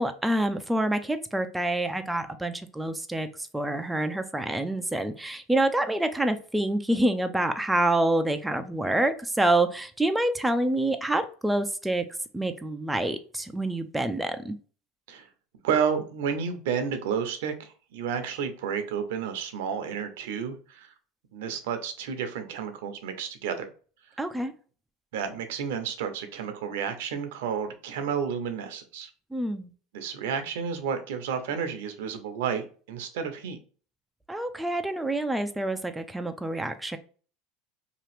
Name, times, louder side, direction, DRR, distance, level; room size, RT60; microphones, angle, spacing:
voice 1, 0.0-12.0 12.3-14.6 24.2-24.5 29.3-29.7 34.3-37.0, right 1 dB, 5° right, 7 dB, 0.3 m, -27 dB
voice 2, 15.6-20.9 21.3-23.7 25.1-29.1 29.9-33.6, right 7 dB, 80° right, 8 dB, 0.6 m, -31 dB
2.9 x 2.4 x 3.1 m, 0.40 s
supercardioid pair, 110°, 0 cm